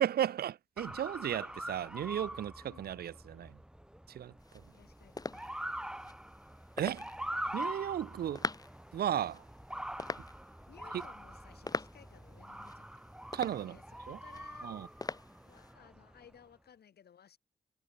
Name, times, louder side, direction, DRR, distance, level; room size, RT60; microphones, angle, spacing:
voice 1, 0.0-2.5 2.8-3.5 4.2-4.3 6.8-7.0 7.5-8.4 8.9-9.4 13.3-13.7 14.1-14.2 14.6-14.9, right 10 dB, 75° right, 0.5 m, -34 dB
Motor vehicle (road) / Siren, 0.8-16.3, right 1 dB, 5° right, 1.0 m, -44 dB
voice 2, 2.6-3.0 4.7-5.5 10.7-13.1 13.6-17.4, left 8 dB, 80° left, 3.9 m, -59 dB
sound 1, 4.4-15.7, left 3 dB, 25° left, 0.8 m, -45 dB
cardioid pair, 65°, 16 cm